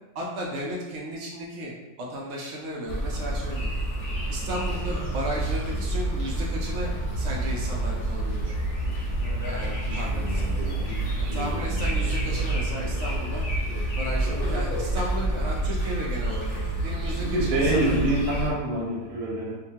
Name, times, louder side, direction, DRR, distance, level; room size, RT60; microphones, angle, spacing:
voice 1, 0.1-1.7 2.0-3.7 4.3-8.6 9.4-10.5 11.3-13.4 13.9-17.9, equal, 65° right, -2 dB, 0.8 m, -34 dB
sound 1, 2.9-18.5, right 1 dB, 50° left, 0.7 m, -28 dB
voice 2, 9.9-11.9 12.7-12.8 17.2-19.5, right 1 dB, 85° right, -5 dB, 1.2 m, -28 dB
2.8 x 2.2 x 2.7 m, 1.1 s
omnidirectional pair, 1.6 m